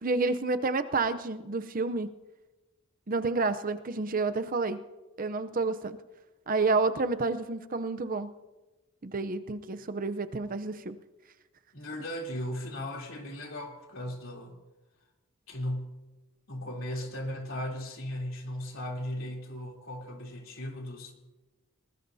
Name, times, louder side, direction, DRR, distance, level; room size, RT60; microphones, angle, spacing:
voice 1, 0.0-2.1 3.1-4.8 5.2-6.0 6.5-8.4 9.0-11.0, right 3 dB, 40° right, 10 dB, 0.7 m, -29 dB
voice 2, 11.7-14.5 15.5-16.0 16.5-21.1, left 1 dB, 65° left, 0 dB, 3.3 m, -37 dB
22.5 x 20.0 x 2.8 m, 1.1 s
head